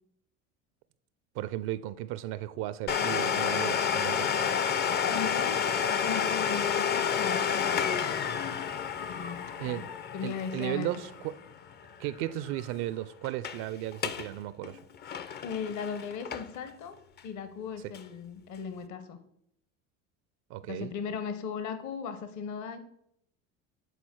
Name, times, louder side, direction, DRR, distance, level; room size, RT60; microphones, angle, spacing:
voice 1, 1.3-4.3 9.6-9.9 10.2-11.3 12.0-14.8 20.5-20.9, right 14 dB, 55° right, 0.5 m, -35 dB
Domestic sounds home sounds, 2.9-12.3 12.6-12.7 13.2-13.6 13.9-14.3 14.6-16.7 17.2-17.3 17.9-18.0, left 7 dB, 25° left, 0.5 m, -30 dB
voice 2, 5.1-8.4 9.1-9.8 10.1-11.0 15.4-16.9 17.2-19.2 20.7-22.8, left 6 dB, 45° left, 0.8 m, -37 dB
8.2 x 4.0 x 4.4 m
hypercardioid pair, 70°, 40 cm